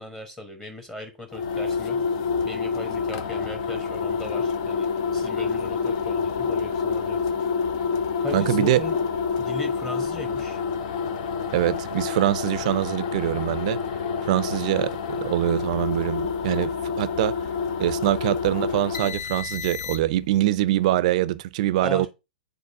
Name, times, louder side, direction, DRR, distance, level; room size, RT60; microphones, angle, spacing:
voice 1, 0.0-2.0 2.4-7.5 8.2-9.0 9.4-10.6 21.8-22.1, left 1 dB, 10° left, 1.2 m, -38 dB
sound 1, 1.3-20.3, left 5 dB, 50° left, 0.8 m, -28 dB
voice 2, 8.3-8.8 11.5-13.8 14.2-17.3 17.8-22.1, right 14 dB, 50° right, 0.5 m, -24 dB
9.6 x 3.9 x 2.7 m
figure-of-eight pair, 110°, 5 cm